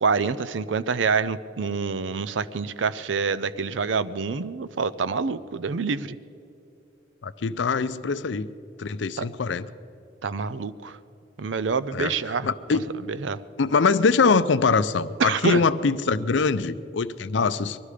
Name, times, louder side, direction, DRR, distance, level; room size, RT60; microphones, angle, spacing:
voice 1, 0.0-6.2 9.2-9.3 10.2-11.0 11.4-12.5 13.1-13.4 15.2-15.6, right 5 dB, 90° right, 15 dB, 0.5 m, -26 dB
voice 2, 7.2-8.5 8.8-9.7 11.9-12.1 12.4-12.8 13.6-17.8, left 4 dB, 75° left, 13 dB, 0.5 m, -23 dB
20.5 x 13.0 x 5.0 m, 2.7 s
head